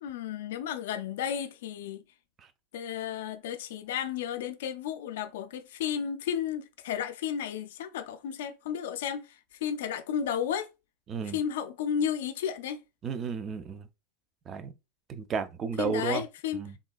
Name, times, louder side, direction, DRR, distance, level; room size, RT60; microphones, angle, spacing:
voice 1, 0.0-2.0 2.7-9.2 9.6-10.7 11.3-12.8 15.8-16.6, left 8 dB, 80° left, 0.4 m, -33 dB
voice 2, 11.1-11.4 13.0-13.9 14.5-14.7 15.1-16.2 16.5-16.8, right 6 dB, 35° right, 0.5 m, -33 dB
3.6 x 2.2 x 2.2 m
supercardioid pair, 105°, 0 cm